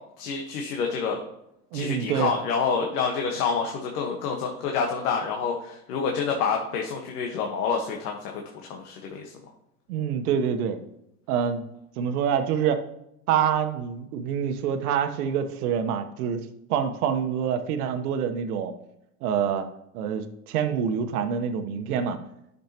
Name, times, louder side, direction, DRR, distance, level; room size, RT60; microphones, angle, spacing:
voice 1, 0.2-1.2 1.7-9.3, left 5 dB, 70° left, 1 dB, 1.4 m, -28 dB
voice 2, 1.7-2.3 9.9-10.8 11.3-11.6 12.0-12.8 13.3-16.4 16.7-18.7 19.2-19.7 19.9-22.2, right 8 dB, 70° right, 8 dB, 1.1 m, -26 dB
10.5 x 6.6 x 2.9 m, 0.82 s
supercardioid pair, 135°, 47 cm